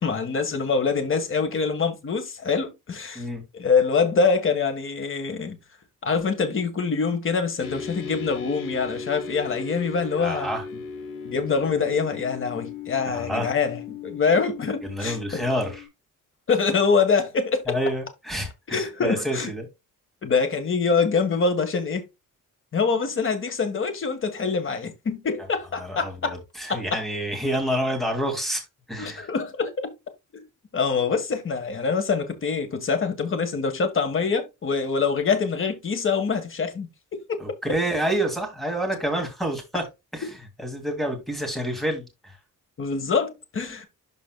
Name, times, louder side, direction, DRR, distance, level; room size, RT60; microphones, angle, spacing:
voice 1, 0.0-3.2 3.5-5.6 6.0-10.5 11.2-15.4 16.5-17.8 18.7-19.5 20.2-22.0 22.7-26.4 26.7-27.0 29.0-29.9 30.3-30.4 30.7-37.4 42.8-43.8, left 5 dB, 40° left, 1.7 m, -25 dB
sound 1, 7.6-15.9, left 6 dB, 80° left, 2.5 m, -37 dB
voice 2, 10.2-10.6 13.1-13.5 14.8-15.9 17.7-19.7 25.8-29.3 37.4-39.8 40.1-40.3 40.6-42.4, equal, ahead, 2.5 m, -28 dB
12.0 x 4.2 x 2.3 m
wide cardioid pair, 170°, 33 cm